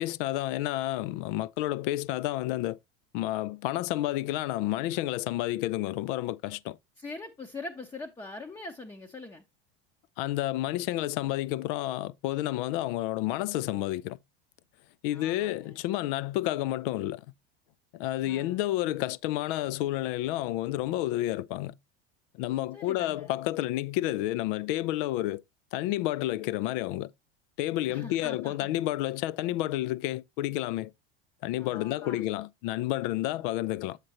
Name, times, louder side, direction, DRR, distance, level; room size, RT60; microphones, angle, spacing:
voice 1, 0.0-2.8 3.1-6.8 10.2-14.2 15.0-17.2 17.9-21.8 22.4-25.4 25.7-27.1 27.6-30.9 31.4-34.0, left 15 dB, 65° left, 0.4 m, -30 dB
voice 2, 7.0-9.4 15.1-15.8 18.2-18.6 22.7-23.3 27.9-28.7 31.6-32.2, left 3 dB, 10° left, 0.7 m, -43 dB
7.6 x 6.6 x 2.7 m
hypercardioid pair, 100°, 30 cm